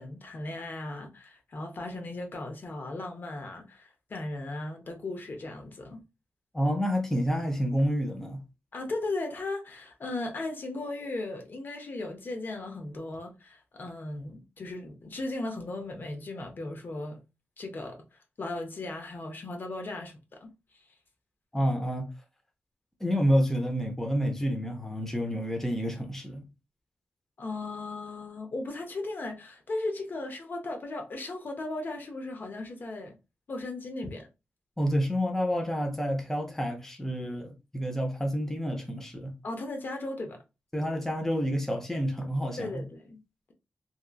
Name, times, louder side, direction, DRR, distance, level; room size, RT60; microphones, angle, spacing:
voice 1, 0.0-6.0 8.7-17.2 17.6-20.5 27.4-33.1 33.5-34.3 39.4-40.4 42.6-43.2, left 2 dB, 50° left, 0.7 m, -37 dB
voice 2, 6.5-8.4 21.5-22.1 23.0-26.4 34.8-39.3 40.7-42.8, equal, 10° left, 0.6 m, -29 dB
2.8 x 2.4 x 2.3 m
wide cardioid pair, 90°, 4 cm